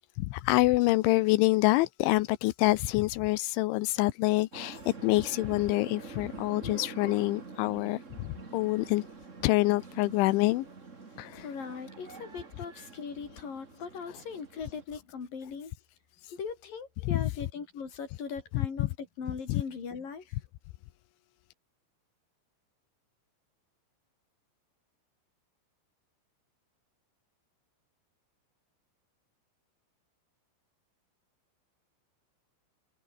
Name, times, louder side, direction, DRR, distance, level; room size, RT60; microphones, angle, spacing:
voice 1, 0.2-9.0 9.4-10.7 11.2-11.5 17.1-17.2 18.8-18.9 19.5-19.6, left 19 dB, 85° left, 3.2 m, -26 dB
sound 1, 4.5-14.8, right 4 dB, 70° right, 0.7 m, -46 dB
voice 2, 11.4-15.7 16.3-20.4, left 6 dB, 45° left, 6.4 m, -39 dB
omnidirectional pair, 5.5 m